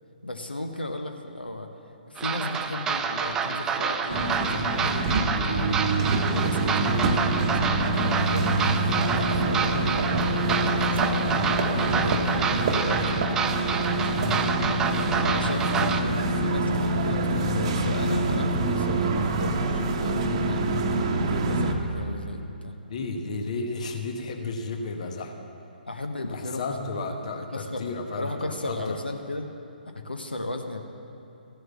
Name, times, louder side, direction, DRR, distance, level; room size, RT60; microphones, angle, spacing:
voice 1, 0.2-1.7 2.1-5.8 6.3-7.6 7.9-10.1 10.4-13.2 13.9-14.6 15.1-20.6 21.3-22.7 25.8-26.9 27.5-27.9 28.2-29.5 29.9-30.8, left 2 dB, 80° left, 5 dB, 1.0 m, -36 dB
sound 1, 2.2-16.0, right 6 dB, 10° right, 0.5 m, -28 dB
sound 2, 4.1-21.7, right 2 dB, 35° right, 1.0 m, -25 dB
voice 2, 22.9-25.5 26.3-29.0, left 3 dB, 45° left, 5 dB, 1.1 m, -33 dB
15.0 x 7.9 x 7.4 m, 2.8 s
figure-of-eight pair, 130°, 5 cm